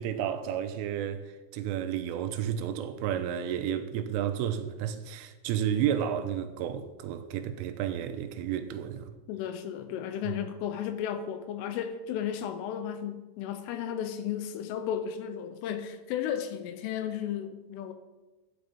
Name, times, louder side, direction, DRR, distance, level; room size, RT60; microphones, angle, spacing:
voice 1, 0.0-9.2 10.2-10.3, right 9 dB, 80° right, 3.3 m, -32 dB
voice 2, 9.3-17.9, left 9 dB, 80° left, 3.2 m, -34 dB
12.5 x 9.3 x 5.2 m
omnidirectional pair, 5.9 m